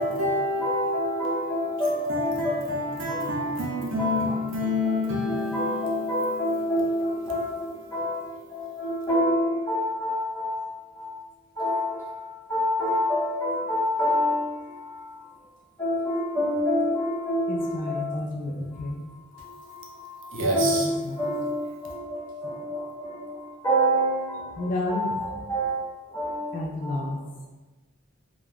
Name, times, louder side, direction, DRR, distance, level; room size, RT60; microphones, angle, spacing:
voice 1, 0.0-9.1 20.3-20.9, left 1 dB, 65° right, -2 dB, 0.6 m, -30 dB
voice 2, 0.6-2.6 3.1-3.2 4.0-4.3 4.9-5.0 5.3-7.4 7.9-8.2 8.8-10.5 11.6-11.9 12.5-14.4 15.8-17.6 17.9-18.1 20.5-20.9 21.2-21.5 22.1-22.6 23.0-23.1 23.6-24.1 24.9-25.1 25.5-25.7 26.1-26.4, equal, 15° left, -8 dB, 0.7 m, -26 dB
voice 3, 17.5-19.0 20.4-20.6 21.0-21.2 22.4-23.4 24.5-25.4 26.1-26.2 26.5-27.5, left 2 dB, 40° left, -1 dB, 0.3 m, -33 dB
2.5 x 2.2 x 3.3 m, 1.2 s
head